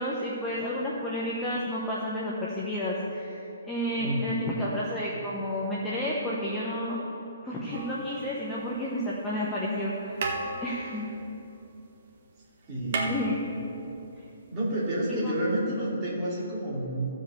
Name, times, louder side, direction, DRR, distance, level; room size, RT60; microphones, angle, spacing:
voice 1, 0.0-7.0 7.4-10.2 10.6-11.0 13.1-13.4 14.2-14.3 15.1-15.3, left 1 dB, 5° left, -6 dB, 0.9 m, -31 dB
voice 2, 4.0-4.7 10.8-10.9 12.7-13.2 14.5-17.1, right 1 dB, 15° right, -8 dB, 2.9 m, -30 dB
sound 1, 7.7-8.9 9.8-9.9 10.2-12.0 12.3-12.4 12.6-14.0 15.2-15.3, right 3 dB, 40° right, 1.5 m, -35 dB
15.0 x 5.2 x 7.0 m, 2.9 s
hypercardioid pair, 170°, 0 cm